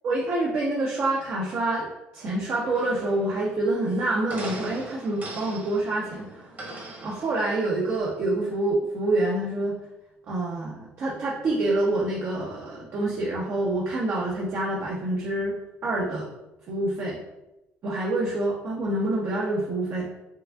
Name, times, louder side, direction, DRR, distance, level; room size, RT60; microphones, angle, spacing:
voice 1, 0.0-6.5 7.0-9.8 10.3-15.5 15.8-16.3 16.7-17.2 17.8-20.1, right 2 dB, 55° right, -4 dB, 0.7 m, -27 dB
sound 1, 2.7-8.0, right 2 dB, 35° right, 1.1 m, -41 dB
4.6 x 2.5 x 2.3 m, 0.95 s
supercardioid pair, 90°, 5 cm